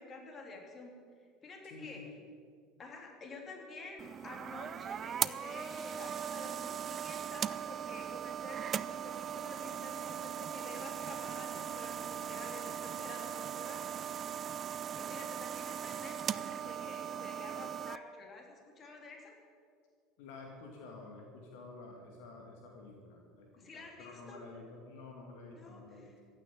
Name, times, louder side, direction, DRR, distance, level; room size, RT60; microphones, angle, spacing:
voice 1, 0.0-2.0 2.8-13.8 15.0-19.4 23.6-24.4 25.5-26.2, left 3 dB, 30° left, 2 dB, 3.2 m, -50 dB
voice 2, 1.7-2.1 20.2-26.1, left 3 dB, 60° left, 0 dB, 2.4 m, -50 dB
sound 1, 4.0-18.0, right 9 dB, 35° right, 0.4 m, -39 dB
15.0 x 9.4 x 9.1 m, 2.1 s
figure-of-eight pair, 70°, 0 cm